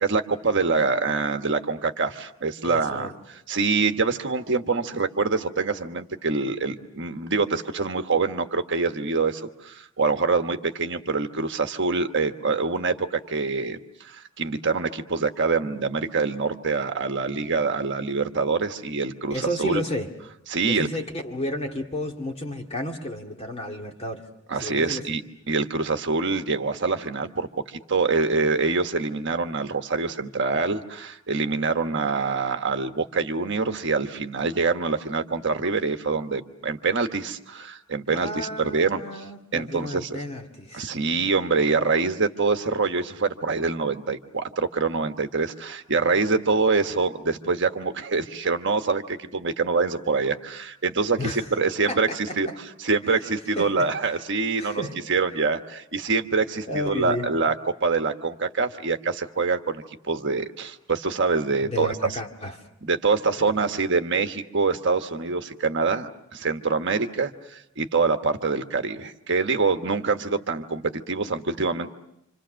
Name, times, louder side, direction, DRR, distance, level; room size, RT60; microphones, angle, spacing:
voice 1, 0.0-19.8 20.5-20.9 24.5-25.2 25.5-39.2 39.5-40.2 40.7-52.5 52.8-54.8 55.1-61.9 62.8-71.9, right 4 dB, 55° right, 1.3 m, -25 dB
voice 2, 2.6-3.1 19.3-20.1 20.6-24.3 24.6-25.1 38.1-40.9 51.2-51.5 51.9-52.6 53.0-53.2 53.6-53.9 54.6-55.0 56.7-57.3 61.6-62.7 63.4-63.7, left 1 dB, 30° left, 2.1 m, -32 dB
28.5 x 26.5 x 6.4 m
head